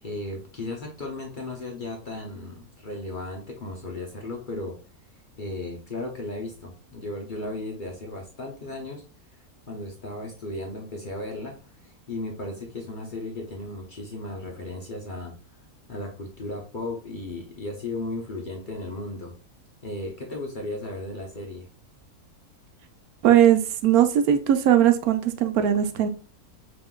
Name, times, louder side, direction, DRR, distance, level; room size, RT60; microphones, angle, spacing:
voice 1, 0.0-4.8 5.4-9.0 9.7-11.5 11.8-15.4 15.9-19.3 19.8-21.7, left 2 dB, 45° left, 0.7 m, -35 dB
voice 2, 23.2-26.1, right 10 dB, 75° right, 1.0 m, -19 dB
5.5 x 3.0 x 2.3 m
omnidirectional pair, 1.6 m